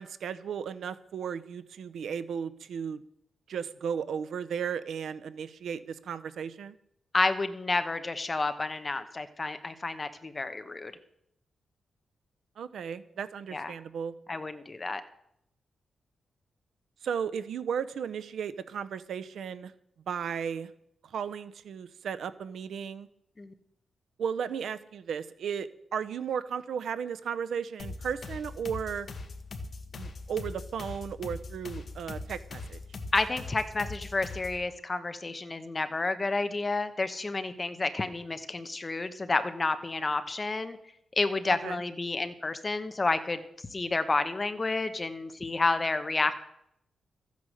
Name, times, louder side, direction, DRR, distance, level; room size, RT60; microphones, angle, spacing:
voice 1, 0.0-3.0 3.5-6.7 12.6-14.1 17.0-19.7 20.1-20.7 21.0-23.1 24.2-29.1 29.9-32.8 41.5-41.8, right 7 dB, 80° right, 13 dB, 0.8 m, -35 dB
voice 2, 7.1-10.9 13.5-13.7 14.3-15.0 23.4-23.5 33.1-40.8 41.2-43.4 43.7-46.3, left 3 dB, 25° left, 9 dB, 1.0 m, -30 dB
sound 1, 27.8-34.7, left 3 dB, 45° left, 1.5 m, -41 dB
14.0 x 9.5 x 6.6 m, 0.75 s
wide cardioid pair, 150°, 0 cm